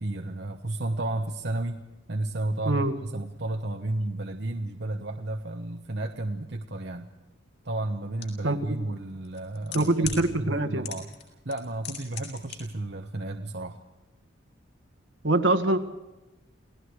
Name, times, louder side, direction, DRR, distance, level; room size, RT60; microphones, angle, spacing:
voice 1, 0.0-1.8 2.1-7.1 7.6-13.8, right 2 dB, 55° right, 4 dB, 1.2 m, -32 dB
sound 1, 8.2-8.3 9.2-10.2 10.8-11.2 11.5-12.6 12.8-12.9, left 9 dB, 60° left, 6.7 m, -36 dB
voice 2, 8.4-8.8 9.7-10.8 15.2-15.8, right 2 dB, 75° right, 8 dB, 1.8 m, -24 dB
29.5 x 18.5 x 4.8 m, 1.0 s
head